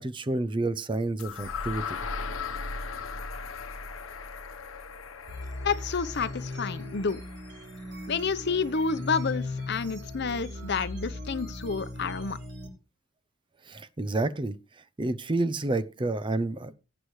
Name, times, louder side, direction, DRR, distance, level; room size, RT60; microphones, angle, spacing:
voice 1, 0.0-2.0 13.7-14.6 15.0-16.7, right 2 dB, 25° right, 0.5 m, -29 dB
sound 1, 1.2-9.1, left 4 dB, 75° left, 1.0 m, -39 dB
sound 2, 5.3-12.7, left 2 dB, 60° right, 3.4 m, -38 dB
voice 2, 5.6-7.2 8.1-12.4, left 5 dB, 55° left, 0.8 m, -29 dB
17.5 x 8.1 x 3.1 m
head